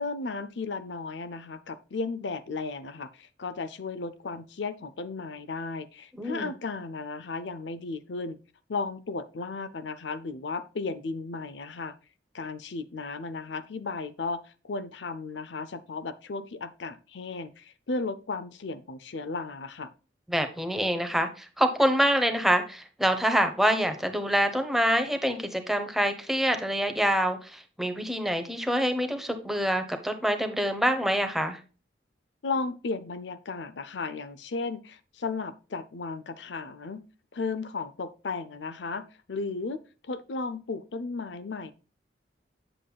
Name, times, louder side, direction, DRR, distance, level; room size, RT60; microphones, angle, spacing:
voice 1, 0.0-8.4 8.7-11.9 12.3-19.9 32.4-37.1 37.3-41.7, left 3 dB, 75° left, 14 dB, 0.6 m, -35 dB
voice 2, 6.2-6.5 20.3-31.6, equal, ahead, 6 dB, 1.0 m, -26 dB
8.6 x 7.5 x 2.3 m, 0.34 s
head